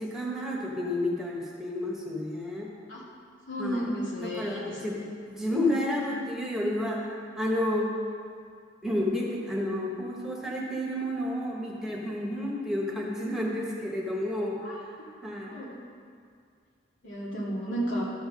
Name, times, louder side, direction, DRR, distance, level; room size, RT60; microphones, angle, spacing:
voice 1, 0.0-2.7 3.6-3.9 4.2-5.0 5.4-7.9 8.8-14.6 15.2-15.6, left 1 dB, 5° right, -3 dB, 1.2 m, -30 dB
voice 2, 3.5-4.8 14.6-14.8 15.5-15.7 17.0-18.0, equal, 80° left, -6 dB, 2.4 m, -32 dB
13.0 x 4.6 x 5.5 m, 2.2 s
head